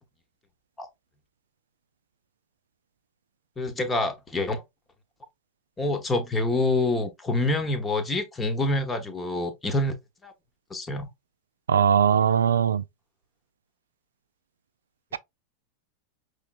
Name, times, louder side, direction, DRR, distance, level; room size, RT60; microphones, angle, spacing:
voice 1, 3.6-4.6 5.8-9.9 10.2-10.3 10.7-11.1, left 2 dB, 15° left, 0.9 m, -26 dB
voice 2, 11.7-12.8, right 8 dB, 65° right, 0.3 m, -20 dB
5.4 x 3.2 x 2.3 m
figure-of-eight pair, 90°, 0 cm